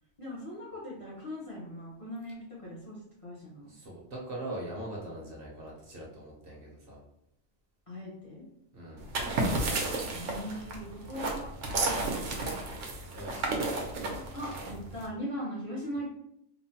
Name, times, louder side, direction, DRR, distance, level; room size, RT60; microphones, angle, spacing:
voice 1, 0.2-3.7 7.9-8.4 10.1-12.5 14.3-16.1, equal, 35° left, -6 dB, 0.6 m, -40 dB
voice 2, 3.7-7.0 8.7-9.1 13.1-13.6, right 1 dB, 55° right, -3 dB, 0.8 m, -41 dB
sound 1, 9.0-15.1, right 2 dB, 85° right, 1.0 m, -32 dB
3.1 x 2.0 x 2.7 m, 0.76 s
omnidirectional pair, 1.3 m